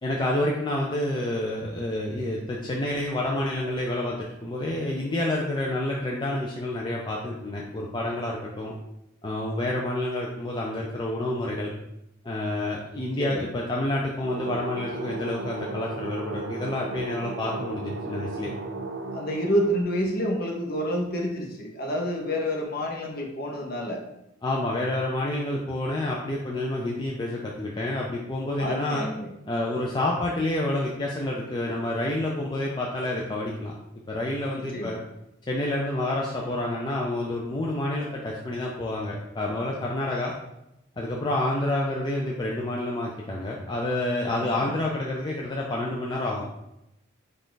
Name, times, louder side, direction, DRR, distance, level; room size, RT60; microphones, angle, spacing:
voice 1, 0.0-8.7 9.2-11.7 12.2-18.5 24.4-29.1 29.5-33.7 34.1-35.0 35.5-40.3 41.0-46.5, left 1 dB, 20° left, -2 dB, 0.4 m, -28 dB
sound 1, 14.2-19.8, right 3 dB, 55° right, 0.6 m, -35 dB
voice 2, 19.1-24.0 28.6-29.3 34.5-35.0 44.6-44.7, equal, 45° left, 1 dB, 0.8 m, -28 dB
5.3 x 2.4 x 3.9 m, 0.86 s
head